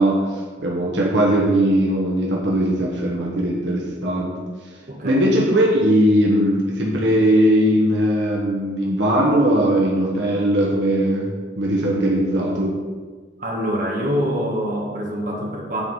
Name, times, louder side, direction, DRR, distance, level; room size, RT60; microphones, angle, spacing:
voice 1, 0.0-4.3 5.0-11.3 11.6-12.8, right 1 dB, 70° right, -3 dB, 1.2 m, -19 dB
voice 2, 4.9-5.2 13.4-15.8, equal, 45° right, -2 dB, 1.6 m, -25 dB
8.7 x 4.8 x 5.6 m, 1.5 s
head